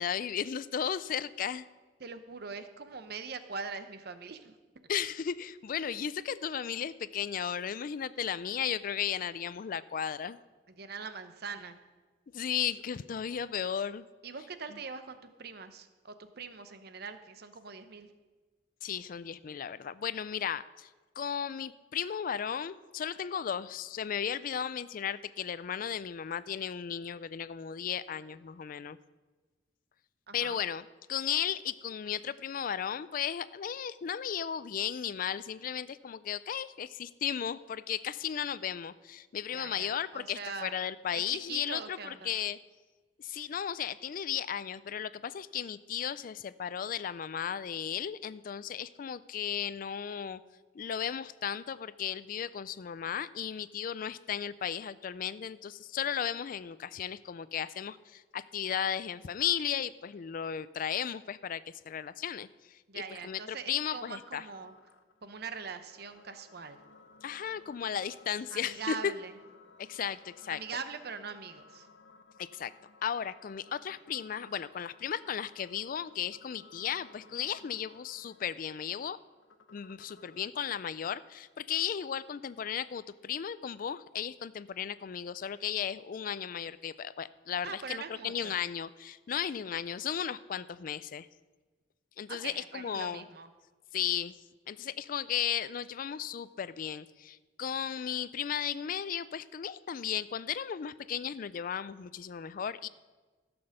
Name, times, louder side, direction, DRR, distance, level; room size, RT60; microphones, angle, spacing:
voice 1, 0.0-1.7 4.9-10.4 12.3-14.0 14.7-14.8 18.8-20.9 21.2-29.0 30.3-42.6 43.2-50.4 50.7-62.8 63.2-64.5 67.2-69.1 69.8-70.6 72.4-72.7 73.0-79.2 79.7-91.3 92.2-93.2 93.9-94.3 94.7-102.9, left 8 dB, 50° left, 16 dB, 0.4 m, -35 dB
voice 2, 2.0-4.5 10.8-11.8 14.2-18.1 30.3-30.6 39.5-40.7 41.1-42.3 62.9-64.7 65.2-66.8 68.5-69.4 70.5-71.9 87.6-88.6 92.3-93.5, right 5 dB, 60° right, 10 dB, 0.8 m, -42 dB
sound 1, 64.5-80.5, left 4 dB, 80° left, 0.7 m, -59 dB
15.0 x 6.0 x 6.5 m, 1.3 s
head